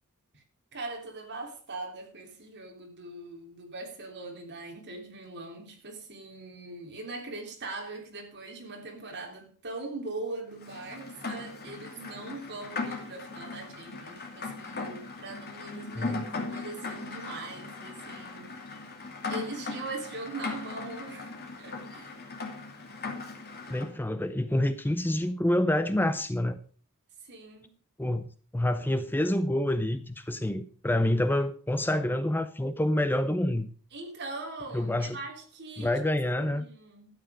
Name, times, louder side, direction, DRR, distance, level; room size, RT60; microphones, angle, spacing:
voice 1, 0.7-18.8 19.3-22.2 27.2-27.7 33.9-37.1, right 2 dB, 50° right, 3.4 m, -41 dB
Rain, 10.6-23.9, left 3 dB, 45° left, 2.5 m, -38 dB
voice 2, 23.7-26.6 28.0-28.3 28.5-33.7 34.7-35.2 35.8-36.6, left 1 dB, 10° left, 0.6 m, -27 dB
12.5 x 9.3 x 5.0 m
head